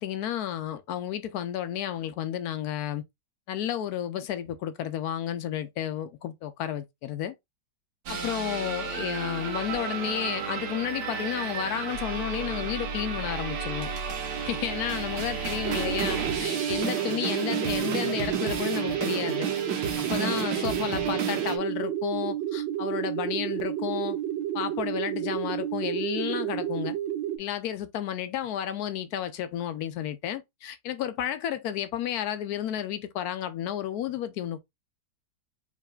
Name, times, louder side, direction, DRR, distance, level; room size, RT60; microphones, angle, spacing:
voice 1, 0.0-3.0 3.5-7.3 8.1-13.9 14.4-19.5 20.0-24.2 24.5-27.0 27.4-34.6, left 10 dB, 70° left, 0.9 m, -32 dB
sound 1, 8.1-21.6, right 6 dB, 70° right, 1.5 m, -32 dB
sound 2, 15.6-27.4, right 11 dB, 85° right, 1.3 m, -31 dB
4.8 x 3.1 x 2.3 m
omnidirectional pair, 2.0 m